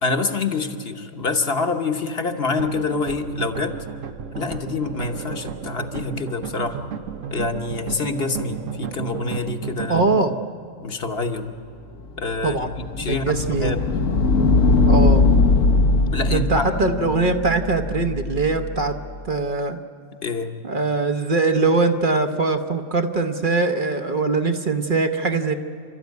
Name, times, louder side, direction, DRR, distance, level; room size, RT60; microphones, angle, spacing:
voice 1, 0.0-3.8 4.3-6.8 7.3-10.0 10.8-11.5 12.2-13.8 16.1-16.7 20.2-20.5, left 3 dB, 50° left, 5 dB, 1.3 m, -26 dB
sound 1, 2.6-10.3, right 7 dB, 85° right, 1.3 m, -33 dB
voice 2, 9.9-10.4 12.4-12.7 13.0-13.8 14.9-15.3 16.3-18.9 19.2-19.8 20.6-25.5, right 3 dB, 45° right, 6 dB, 1.1 m, -22 dB
sound 2, 12.0-18.9, left 3 dB, 85° left, 1.5 m, -20 dB
29.0 x 13.0 x 9.4 m, 2.3 s
omnidirectional pair, 1.3 m